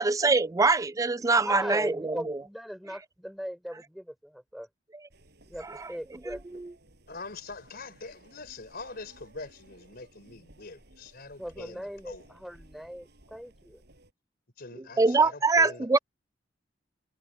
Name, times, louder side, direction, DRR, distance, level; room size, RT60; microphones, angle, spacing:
voice 1, 0.0-2.4 5.6-5.9 6.3-6.7 15.0-16.0, right 3 dB, 20° right, 0.4 m, -24 dB
voice 2, 1.4-4.7 5.5-6.6 11.4-13.8, equal, ahead, 3.8 m, -39 dB
sound 1, 5.1-14.1, right 1 dB, 60° right, 7.1 m, -57 dB
voice 3, 7.1-12.2 14.6-16.0, left 3 dB, 55° left, 4.1 m, -44 dB
head